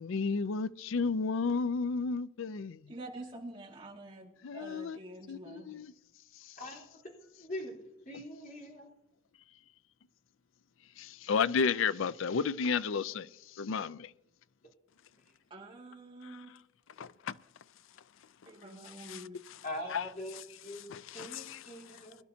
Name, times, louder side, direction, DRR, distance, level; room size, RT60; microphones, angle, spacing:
voice 1, 0.0-2.8 4.4-5.0 5.3-5.9 11.0-13.3 13.6-14.1 17.0-17.3 19.0-19.2 19.9-20.4 20.9-21.6, left 5 dB, 65° left, 0.4 m, -32 dB
voice 2, 2.9-5.7 15.5-16.5 18.4-19.4, right 2 dB, 25° right, 2.1 m, -47 dB
voice 3, 7.4-7.7 8.1-8.9 19.6-20.8 21.1-22.2, left 1 dB, 40° left, 3.8 m, -42 dB
22.0 x 11.5 x 2.8 m
head